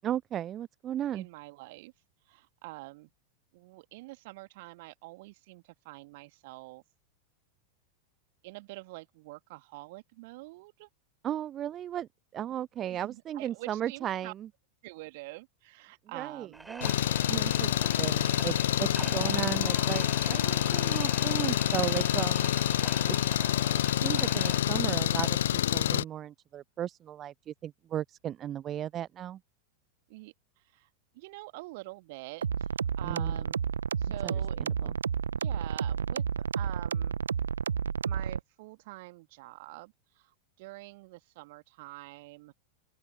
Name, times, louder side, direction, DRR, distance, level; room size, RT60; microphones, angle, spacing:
voice 1, 0.0-1.3 11.2-14.5 16.1-22.5 23.0-23.2 24.0-29.4 33.0-33.4 34.2-34.3 34.6-34.9, right 11 dB, 30° right, 0.5 m, -36 dB
voice 2, 1.1-1.9 2.3-3.1 3.5-6.8 8.4-10.9 12.9-14.3 14.8-16.7 18.9-19.4 30.1-30.9 31.1-32.7 33.0-33.6 34.0-34.6 35.3-37.2 38.0-42.5, right 22 dB, 50° right, 2.1 m, -46 dB
sound 1, 16.5-25.5, right 2 dB, 5° right, 3.5 m, -43 dB
Engine, 16.8-26.0, left 11 dB, 60° left, 0.3 m, -27 dB
sound 2, 32.4-38.4, right 7 dB, 70° right, 1.2 m, -31 dB
open air
figure-of-eight pair, 90°, 0 cm